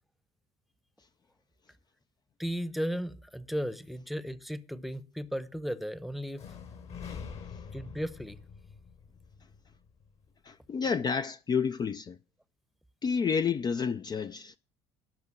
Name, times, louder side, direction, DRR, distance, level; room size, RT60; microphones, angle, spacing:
voice 1, 2.4-6.4 7.7-8.4, equal, ahead, 0.9 m, -35 dB
sound 1, 6.4-10.3, left 6 dB, 55° left, 3.5 m, -45 dB
voice 2, 10.4-12.2 13.0-14.6, left 6 dB, 30° left, 0.5 m, -30 dB
12.0 x 5.8 x 7.4 m
hypercardioid pair, 70°, 13 cm